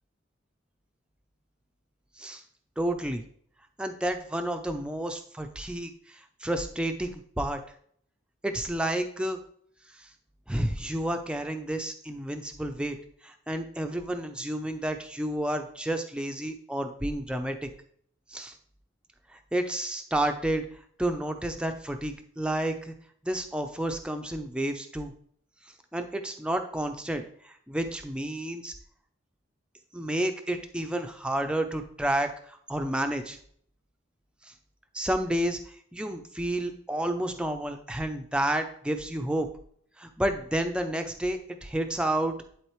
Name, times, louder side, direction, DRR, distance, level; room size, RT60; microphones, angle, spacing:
voice 1, 2.8-3.2 3.8-7.6 8.4-9.4 10.0-10.1 10.5-13.0 13.2-17.7 18.3-18.6 19.3-20.7 21.0-22.9 23.2-25.1 25.9-28.7 29.9-33.4 34.4-34.5 34.9-39.5 40.0-42.4, right 1 dB, 5° right, 5 dB, 0.5 m, -30 dB
11.0 x 4.0 x 3.2 m, 0.62 s
head